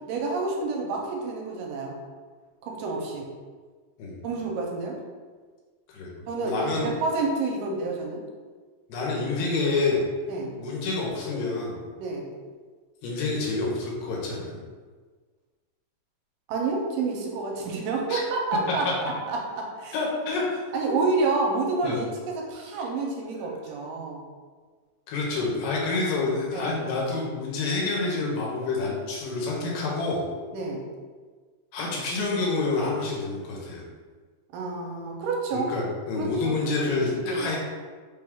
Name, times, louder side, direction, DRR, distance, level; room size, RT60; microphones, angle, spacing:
voice 1, 0.1-1.9 2.6-3.3 4.2-5.0 6.3-8.2 10.3-10.5 12.0-12.3 16.5-20.0 20.7-24.2 26.5-26.8 30.5-30.8 34.5-35.7 36.2-36.5 36.9-37.6, right 3 dB, 85° right, 0 dB, 2.3 m, -29 dB
voice 2, 5.9-6.9 8.9-10.0 10.6-11.8 13.0-14.6 18.1-18.2 19.9-20.6 21.8-22.0 25.1-30.2 31.7-33.8 35.5-37.6, left 3 dB, 80° left, -3 dB, 2.4 m, -28 dB
5.3 x 2.3 x 3.5 m, 1.5 s
omnidirectional pair, 3.9 m